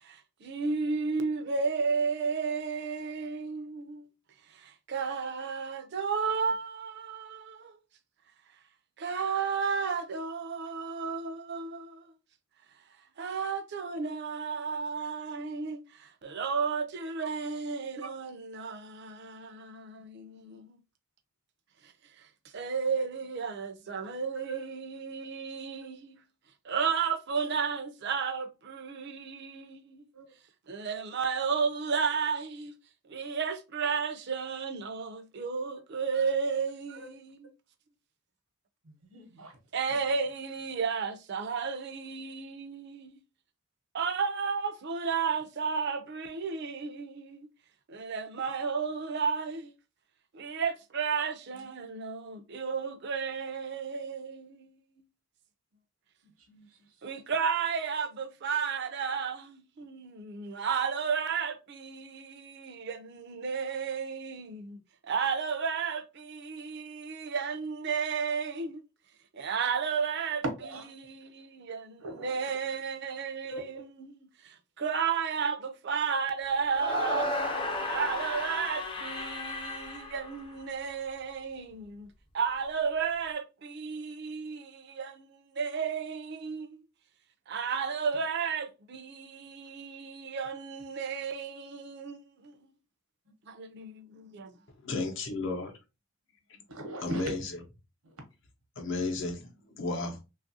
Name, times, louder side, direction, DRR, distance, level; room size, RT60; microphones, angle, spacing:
voice 1, 0.0-4.1 4.5-7.8 9.0-12.1 13.2-20.8 22.2-22.3 22.5-26.2 26.6-30.0 30.7-32.7 33.1-37.5 39.7-43.2 43.9-47.5 47.9-49.7 50.3-54.8 57.0-64.8 65.0-68.8 69.3-70.4 71.0-82.1 82.3-86.8 87.5-92.5 93.5-94.5, right 5 dB, 50° right, 0.4 m, -33 dB
voice 2, 20.2-20.6 23.5-23.7 24.3-24.7 30.1-30.2 36.9-37.1 38.8-39.5 41.8-41.9 51.5-51.7 56.5-56.9 70.6-70.9 72.0-72.4 73.5-73.6 80.3-80.4 90.2-90.4 96.7-97.3 98.0-98.2, right 2 dB, 85° right, 0.8 m, -42 dB
sound 1, 76.7-80.9, left 2 dB, 25° left, 0.4 m, -34 dB
voice 3, 94.8-95.7 96.5-96.6 97.0-97.6 98.8-100.2, left 3 dB, 60° left, 0.7 m, -33 dB
3.0 x 2.4 x 2.5 m
head